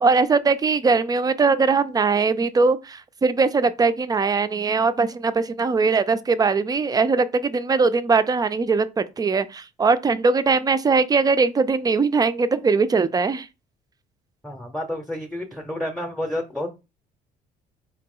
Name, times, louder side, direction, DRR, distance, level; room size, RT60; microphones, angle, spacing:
voice 1, 0.0-13.5, right 4 dB, 20° right, 0.5 m, -20 dB
voice 2, 14.4-16.7, left 1 dB, ahead, 0.8 m, -30 dB
4.7 x 2.9 x 3.8 m
cardioid pair, 110°, 17 cm